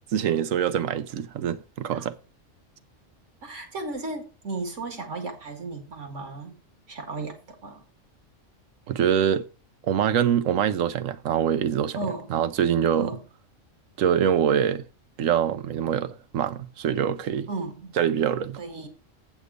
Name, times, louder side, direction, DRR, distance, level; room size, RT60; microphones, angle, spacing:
voice 1, 0.1-2.2 8.9-9.5 9.8-12.0 12.3-13.1 14.0-14.8 15.2-17.5 18.0-18.6, right 9 dB, 85° right, 1.1 m, -24 dB
voice 2, 3.4-6.6 6.9-7.8 11.9-12.4 13.0-13.2 17.5-17.9 18.6-18.9, right 3 dB, 70° right, 2.3 m, -35 dB
8.3 x 6.9 x 5.0 m
omnidirectional pair, 1.3 m